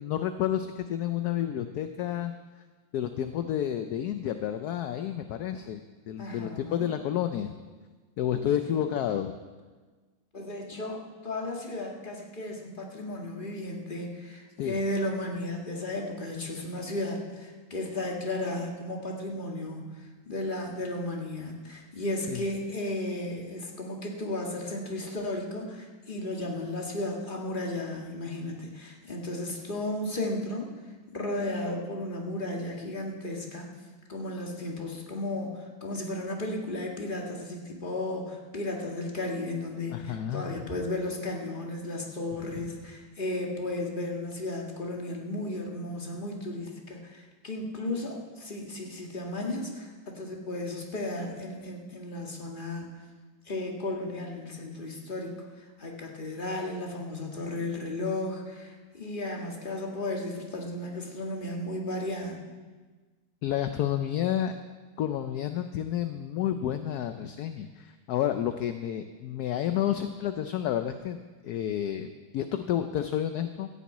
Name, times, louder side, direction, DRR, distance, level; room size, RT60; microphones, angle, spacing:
voice 1, 0.0-2.3 2.9-5.8 6.1-7.5 8.2-9.3 14.6-14.8 22.3-22.4 39.9-40.6 63.4-64.5 65.0-73.7, left 10 dB, 70° left, 8 dB, 1.0 m, -30 dB
voice 2, 6.2-6.9 8.4-8.9 10.3-30.7 31.1-33.7 34.1-53.0 53.5-62.4, left 1 dB, 25° left, 0 dB, 1.9 m, -34 dB
14.5 x 7.2 x 8.5 m, 1.4 s
omnidirectional pair, 2.1 m